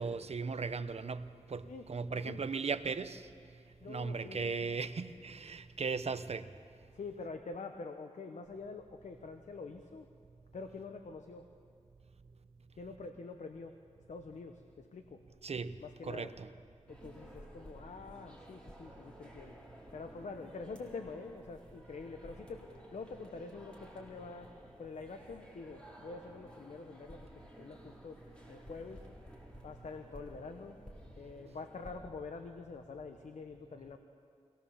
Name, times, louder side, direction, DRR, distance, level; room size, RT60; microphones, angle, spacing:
voice 1, 0.0-3.3 3.9-6.5 15.4-15.7 16.0-16.5, right 4 dB, 60° right, 11 dB, 0.9 m, -37 dB
voice 2, 3.8-4.7 6.9-10.1 10.5-11.5 12.8-13.7 14.1-15.2 15.8-16.3 16.9-19.6 19.9-24.5 24.8-28.2 28.5-29.0 29.6-30.8 31.2-34.0, left 4 dB, 85° left, 6 dB, 1.0 m, -46 dB
sound 1, 16.9-32.0, equal, 10° left, 4.3 m, -54 dB
23.5 x 18.5 x 7.2 m, 2.3 s
wide cardioid pair, 75°, 12 cm